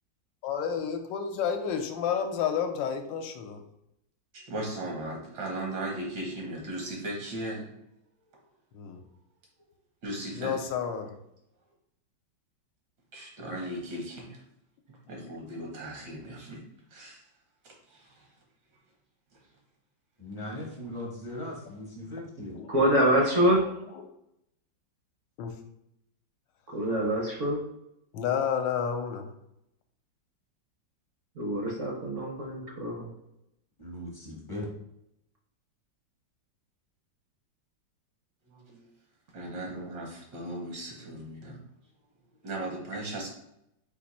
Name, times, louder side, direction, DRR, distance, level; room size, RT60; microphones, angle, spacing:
voice 1, 0.4-3.6 8.7-9.0 10.4-11.1 15.2-15.3 22.5-22.7 23.9-24.0 25.4-25.6 28.1-29.3, left 7 dB, 80° left, 6 dB, 1.3 m, -30 dB
voice 2, 4.3-7.7 10.0-10.6 13.1-14.4 15.1-16.6 16.9-17.2 17.9-18.3 38.5-38.9 39.3-41.6 42.4-43.3, right 1 dB, 75° right, -1 dB, 1.9 m, -37 dB
voice 3, 20.2-22.6 33.8-34.7, left 1 dB, 30° left, -4 dB, 0.6 m, -39 dB
voice 4, 22.7-23.7 26.7-27.6 31.4-33.1, equal, 55° right, -1 dB, 0.9 m, -25 dB
4.6 x 2.5 x 4.1 m, 0.81 s
omnidirectional pair, 2.1 m